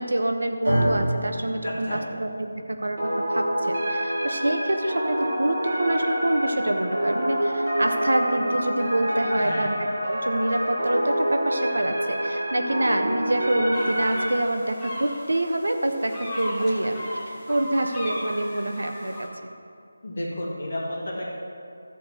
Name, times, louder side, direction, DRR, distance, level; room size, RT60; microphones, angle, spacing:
voice 1, 0.0-3.0 3.3-9.7 10.1-17.1 17.5-19.3, right 1 dB, 80° right, 5 dB, 1.0 m, -26 dB
sound 1, 0.6-8.9, right 1 dB, 65° right, 2.4 m, -33 dB
voice 2, 1.6-2.0 9.3-9.7 16.6-16.7 20.0-21.3, left 1 dB, 30° left, -7 dB, 2.2 m, -32 dB
sound 2, 3.0-14.3, equal, 35° right, 2.0 m, -27 dB
sound 3, 13.7-19.3, equal, 5° left, 0.8 m, -36 dB
13.5 x 4.7 x 6.3 m, 2.4 s
figure-of-eight pair, 180°, 0 cm